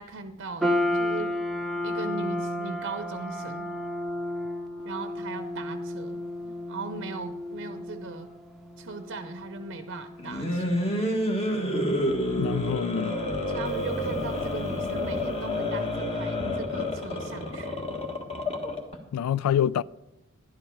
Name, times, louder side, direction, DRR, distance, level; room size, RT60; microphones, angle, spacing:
voice 1, 0.0-1.4 1.8-3.7 4.8-8.3 8.8-10.8 13.5-17.9, right 3 dB, 50° right, 0.6 m, -39 dB
sound 1, 0.6-15.0, left 1 dB, ahead, 0.7 m, -34 dB
sound 2, 10.2-19.0, left 1 dB, 25° left, 1.5 m, -29 dB
voice 2, 12.3-13.2 19.1-19.8, left 9 dB, 85° left, 0.3 m, -26 dB
11.5 x 11.0 x 4.7 m
head